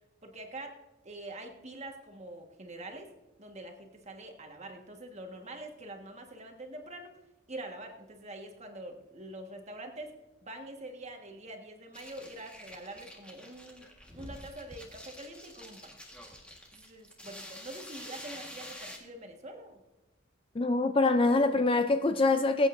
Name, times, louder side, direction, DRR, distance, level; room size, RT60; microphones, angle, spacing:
voice 1, 0.2-0.8 1.0-3.1 3.4-7.2 7.5-10.1 10.4-15.9 16.7-19.8, right 1 dB, 35° right, 3 dB, 1.5 m, -45 dB
sound 1, 11.9-19.0, equal, 5° left, 1.5 m, -48 dB
voice 2, 20.5-22.7, left 3 dB, 25° left, 9 dB, 0.4 m, -24 dB
21.5 x 8.9 x 2.6 m, 1.1 s
head